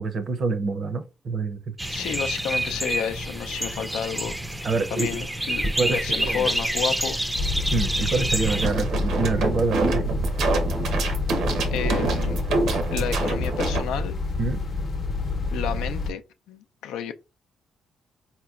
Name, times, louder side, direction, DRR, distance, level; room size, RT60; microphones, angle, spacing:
voice 1, 0.0-1.6 4.6-5.1 5.8-6.4 7.7-10.0 13.2-13.4 14.4-14.6, right 3 dB, 50° right, 0.6 m, -26 dB
sound 1, 1.8-8.7, right 1 dB, 10° right, 0.4 m, -28 dB
voice 2, 1.9-4.4 4.9-7.2 10.9-11.0 11.7-12.4 12.9-14.2 15.5-16.2 16.5-17.1, left 8 dB, 90° left, 0.4 m, -31 dB
sound 2, 7.3-16.1, left 2 dB, 55° left, 0.7 m, -28 dB
sound 3, 8.4-13.8, right 3 dB, 80° right, 0.9 m, -26 dB
4.2 x 2.8 x 2.4 m
cardioid pair, 90°, 0 cm